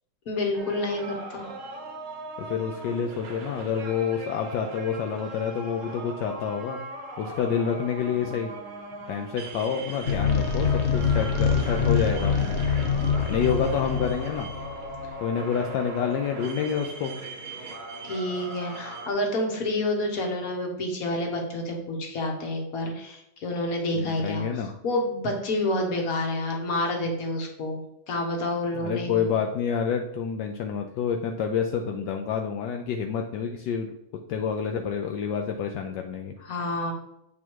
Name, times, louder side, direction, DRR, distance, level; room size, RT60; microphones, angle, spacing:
voice 1, 0.3-1.5 18.0-29.3 36.4-36.9, left 1 dB, 45° left, 2 dB, 1.5 m, -29 dB
sound 1, 0.5-19.1, right 2 dB, 50° right, 1.1 m, -39 dB
voice 2, 2.4-6.8 7.2-8.5 9.1-12.6 13.3-14.5 15.2-17.1 23.9-24.7 28.7-33.9 34.3-36.3, left 7 dB, 75° left, 3 dB, 1.0 m, -28 dB
sound 2, 10.1-15.3, left 6 dB, 90° left, 0.6 m, -25 dB
8.3 x 3.6 x 4.6 m, 0.82 s
omnidirectional pair, 2.3 m